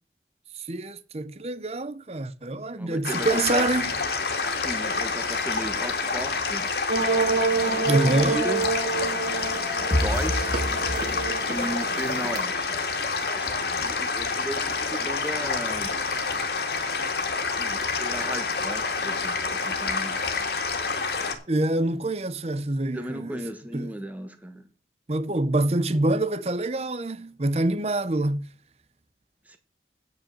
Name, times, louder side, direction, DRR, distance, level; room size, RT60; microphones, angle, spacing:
voice 1, 0.5-3.9 7.8-8.4 21.0-23.4 23.7-23.9 25.1-28.5, right 2 dB, 35° right, 0.7 m, -26 dB
voice 2, 2.8-3.7 4.6-6.7 7.6-8.7 9.9-10.5 11.5-12.8 13.3-15.9 17.4-20.2 22.9-24.7 29.5-29.6, right 1 dB, 10° right, 1.4 m, -35 dB
sound 1, 3.0-21.4, left 4 dB, 65° left, 2.1 m, -28 dB
sound 2, 6.9-12.4, right 4 dB, 60° right, 2.4 m, -28 dB
sound 3, 9.9-11.7, left 1 dB, 35° left, 2.2 m, -28 dB
9.1 x 5.8 x 7.2 m
head